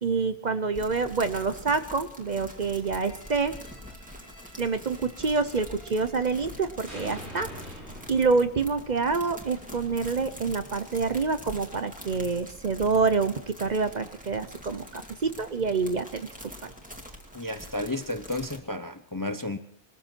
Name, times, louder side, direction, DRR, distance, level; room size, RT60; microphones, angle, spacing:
voice 1, 0.0-3.6 4.6-7.8 8.1-16.3 16.6-16.7, right 4 dB, 45° right, 10 dB, 0.8 m, -27 dB
sound 1, 0.7-18.6, equal, 5° right, 2.3 m, -45 dB
sound 2, 2.7-6.6 6.9-9.9, equal, 80° right, 8.4 m, -47 dB
voice 2, 17.3-19.6, left 2 dB, 20° left, 10 dB, 0.6 m, -32 dB
22.0 x 14.0 x 4.4 m, 0.62 s
omnidirectional pair, 1.1 m